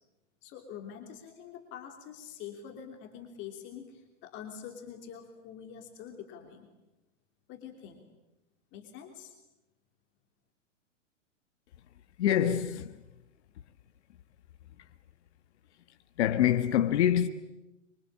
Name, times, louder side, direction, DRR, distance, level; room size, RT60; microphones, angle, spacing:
voice 1, 0.4-6.7 7.5-8.1 8.7-9.3, left 8 dB, 30° left, 3.2 m, -45 dB
voice 2, 12.2-13.0 16.2-17.3, left 10 dB, 60° left, 1.5 m, -25 dB
26.0 x 25.0 x 8.8 m
hypercardioid pair, 145°, 38 cm